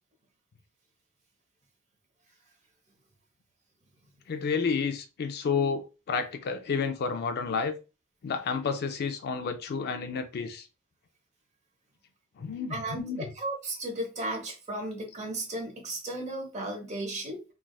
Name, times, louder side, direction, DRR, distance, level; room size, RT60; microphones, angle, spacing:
voice 1, 4.3-7.7 8.2-10.6 12.4-13.2, left 5 dB, 45° left, 0.4 m, -30 dB
voice 2, 12.7-17.4, right 1 dB, 30° right, 0.9 m, -35 dB
3.3 x 2.4 x 2.2 m
head